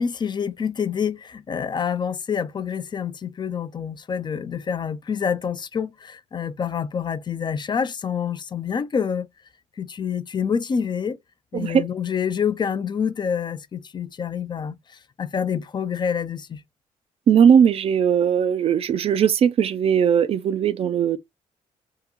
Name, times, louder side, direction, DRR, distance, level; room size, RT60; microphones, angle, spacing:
voice 1, 0.0-9.3 9.8-11.2 11.5-14.8 15.2-16.6, left 7 dB, 35° left, 0.4 m, -27 dB
voice 2, 11.5-11.9 17.3-21.2, right 8 dB, 50° right, 0.4 m, -19 dB
3.7 x 2.3 x 2.9 m
cardioid pair, 85°, 13 cm